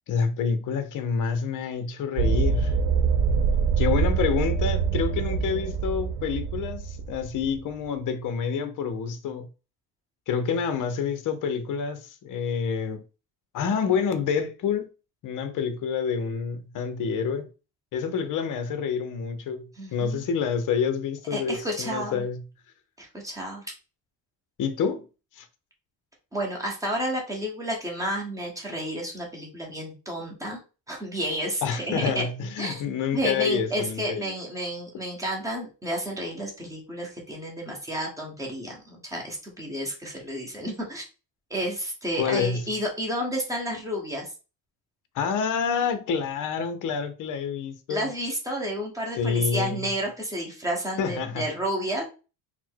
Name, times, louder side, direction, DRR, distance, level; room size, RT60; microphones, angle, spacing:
voice 1, 0.1-2.7 3.8-9.5 10.3-13.0 13.5-14.9 15.2-17.5 17.9-22.4 24.6-25.0 25.4-25.5 31.6-34.3 42.2-42.6 45.1-48.1 49.2-49.9 51.0-51.4, left 6 dB, 45° left, 0.6 m, -28 dB
sound 1, 2.2-7.6, right 6 dB, 75° right, 0.6 m, -25 dB
voice 2, 19.8-20.2 21.3-22.2 23.0-23.6 26.3-30.6 30.9-32.3 32.6-32.8 33.1-41.0 41.5-44.3 47.9-52.0, equal, 5° right, 1.0 m, -31 dB
4.2 x 2.1 x 4.4 m
cardioid pair, 175°, 46 cm